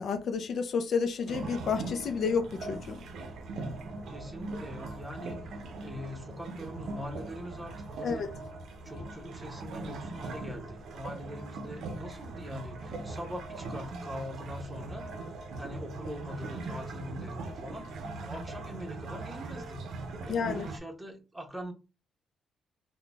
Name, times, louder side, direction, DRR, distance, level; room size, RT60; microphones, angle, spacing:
voice 1, 0.0-3.0 8.0-8.3 20.3-20.7, left 5 dB, 55° left, 0.5 m, -30 dB
sound 1, 1.3-20.8, right 3 dB, 70° right, 0.6 m, -40 dB
voice 2, 4.1-8.2 8.8-15.1 15.6-17.9 18.2-19.9 20.2-21.7, equal, 10° right, 0.9 m, -42 dB
3.8 x 2.2 x 3.4 m
cardioid pair, 110°, 0 cm